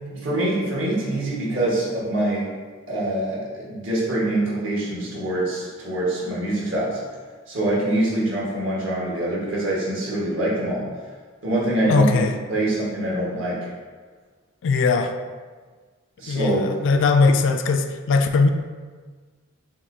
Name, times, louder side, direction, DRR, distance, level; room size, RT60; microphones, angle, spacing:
voice 1, 0.1-2.5 2.9-7.0 7.5-10.9 11.4-13.7 16.2-16.6, right 1 dB, 60° right, -6 dB, 1.4 m, -24 dB
voice 2, 11.9-12.3 14.6-15.1 16.3-18.5, left 4 dB, 55° left, 7 dB, 0.3 m, -19 dB
7.1 x 2.7 x 2.7 m, 1.5 s
head